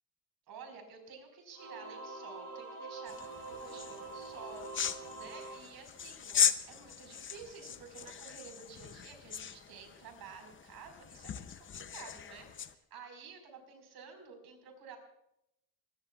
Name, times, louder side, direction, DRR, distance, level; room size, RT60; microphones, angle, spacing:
voice 1, 0.5-6.4 6.7-15.0, right 5 dB, 65° right, 4 dB, 4.9 m, -51 dB
Singing / Musical instrument, 1.5-6.4, right 3 dB, 35° right, 7.7 m, -45 dB
sound 1, 3.1-12.7, left 8 dB, 30° left, 0.6 m, -38 dB
25.0 x 21.0 x 2.4 m, 0.82 s
cardioid pair, 155°, 40 cm